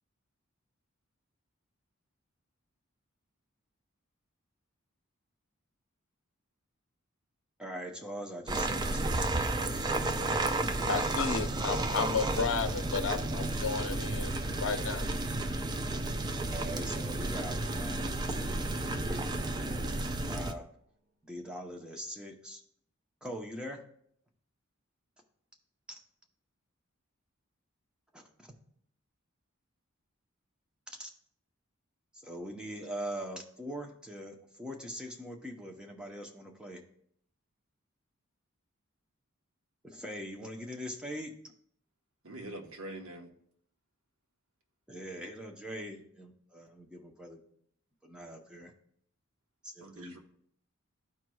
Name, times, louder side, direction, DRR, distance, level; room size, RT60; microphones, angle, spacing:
voice 1, 7.6-9.3 16.4-18.7 18.9-19.3 19.6-19.9 20.2-20.7 21.2-22.6 23.2-23.8 25.9-26.0 28.1-28.5 30.9-31.1 32.2-36.8 39.8-41.3 42.4-42.6 44.9-47.4 48.0-48.7 49.6-50.2, equal, 5° right, 0.8 m, -42 dB
sound 1, 8.5-20.5, right 2 dB, 20° right, 0.4 m, -32 dB
voice 2, 10.8-15.1, left 5 dB, 70° left, 0.6 m, -33 dB
sound 2, 16.0-20.7, right 1 dB, 55° right, 0.9 m, -50 dB
voice 3, 42.2-43.3 49.8-50.2, right 1 dB, 75° right, 1.1 m, -44 dB
13.0 x 4.6 x 2.3 m
head